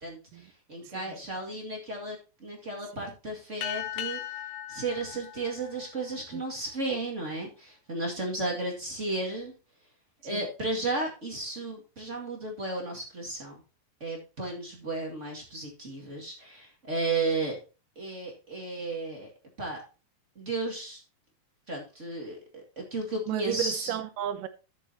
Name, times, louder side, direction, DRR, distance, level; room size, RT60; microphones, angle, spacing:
voice 1, 0.0-4.2 4.7-9.5 10.2-13.6 14.0-17.6 18.0-19.3 19.6-19.8 20.4-21.0 21.7-23.9, right 2 dB, 25° right, 1.8 m, -34 dB
sound 1, 3.6-6.6, left 12 dB, 75° left, 1.5 m, -38 dB
voice 2, 23.3-24.5, right 10 dB, 75° right, 2.4 m, -33 dB
13.0 x 7.0 x 2.8 m
omnidirectional pair, 4.1 m